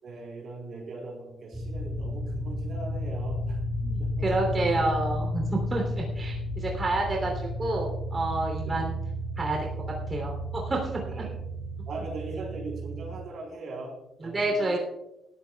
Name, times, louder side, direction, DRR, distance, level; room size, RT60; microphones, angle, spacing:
voice 1, 0.0-3.6 4.0-4.5 8.6-8.8 11.0-11.3 11.9-14.8, right 3 dB, 55° right, 1 dB, 3.7 m, -40 dB
sound 1, 1.5-13.2, equal, 5° right, 3.4 m, -33 dB
voice 2, 3.8-9.0 9.4-9.7 10.1-11.2 14.2-14.8, right 2 dB, 25° right, 0 dB, 3.0 m, -29 dB
19.0 x 13.5 x 2.3 m, 0.88 s
cardioid pair, 140°, 0 cm